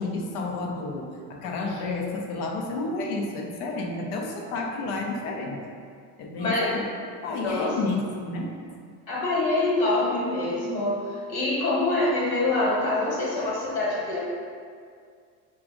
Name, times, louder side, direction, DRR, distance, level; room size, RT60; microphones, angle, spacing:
voice 1, 0.0-5.7 6.2-6.8 7.2-8.6 8.9-9.0, left 3 dB, 80° left, 1 dB, 0.8 m, -31 dB
voice 2, 7.3-7.7 9.1-14.2, left 2 dB, 50° left, -5 dB, 1.4 m, -25 dB
4.9 x 2.4 x 3.7 m, 2.2 s
supercardioid pair, 130°, 46 cm